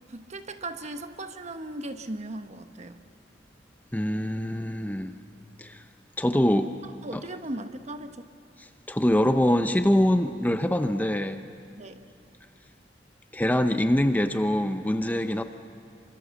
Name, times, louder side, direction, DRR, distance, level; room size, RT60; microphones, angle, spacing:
voice 1, 0.1-3.0 6.8-8.3 11.8-12.0, right 1 dB, 40° right, 8 dB, 1.2 m, -37 dB
voice 2, 3.9-5.2 5.6-5.8 6.2-6.7 7.1-7.2 8.9-11.4 13.3-15.4, left 1 dB, 10° left, 8 dB, 0.7 m, -24 dB
27.5 x 24.5 x 7.1 m, 2.6 s
head